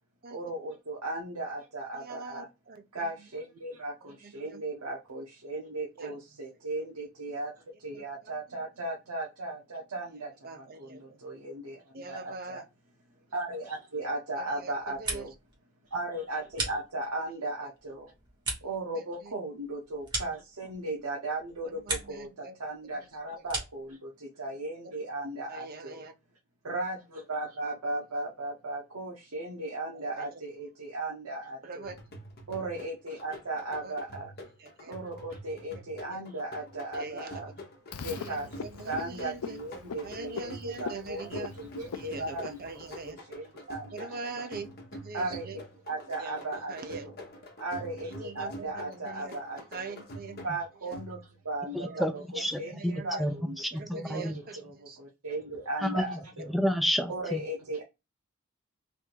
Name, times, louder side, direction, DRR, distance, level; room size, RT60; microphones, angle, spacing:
voice 1, 0.3-2.5 2.9-7.5 7.8-12.6 13.3-15.3 15.9-18.1 18.6-26.0 26.6-31.9 32.5-34.3 34.9-37.5 38.0-42.6 43.1-44.5 45.1-47.1 47.6-49.9 50.4-52.2 52.6-53.6 53.9-56.6 57.1-57.8, right 2 dB, 85° right, 1.0 m, -37 dB
voice 2, 1.9-3.1 4.1-4.6 6.0-6.2 7.9-8.0 10.4-11.2 11.9-12.6 14.4-15.3 19.0-19.3 21.6-22.6 24.8-24.9 25.5-26.1 29.9-30.4 31.6-32.0 33.6-33.9 34.6-34.9 36.1-36.2 36.9-37.5 38.0-39.6 40.0-41.5 41.9-43.2 43.9-45.6 46.2-47.1 48.0-49.3 49.7-50.4 51.9-52.0 52.5-53.3 53.7-54.6 54.9-55.0, right 4 dB, 40° right, 0.7 m, -43 dB
sound 1, 14.7-15.6 15.9-17.3 17.7-21.0 21.4-22.3 22.6-23.9, right 2 dB, 20° right, 1.4 m, -38 dB
sound 2, 31.8-51.5, equal, 45° left, 1.1 m, -46 dB
Frog, 37.9-43.1, left 6 dB, 80° left, 0.5 m, -42 dB
voice 3, 51.7-52.9 53.2-54.4 55.8-56.2 56.5-57.4, equal, ahead, 0.5 m, -30 dB
3.4 x 2.6 x 4.5 m
head